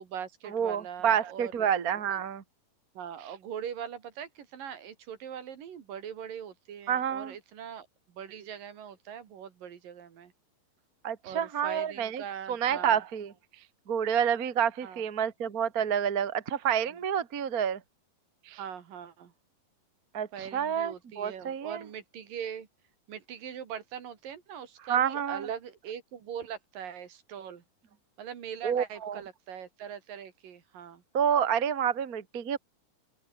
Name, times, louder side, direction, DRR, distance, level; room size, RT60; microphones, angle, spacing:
voice 1, 0.0-2.2 3.0-10.3 11.2-13.0 14.8-15.0 18.6-19.3 20.3-22.7 23.1-27.6 28.2-31.0, right 8 dB, 70° right, 4.0 m, -41 dB
voice 2, 0.5-2.4 6.9-7.3 11.0-12.2 12.5-13.3 13.9-17.8 18.5-18.6 20.1-21.8 24.9-25.4 28.6-29.2 31.1-32.6, right 8 dB, 35° right, 1.5 m, -28 dB
open air
omnidirectional pair, 4.1 m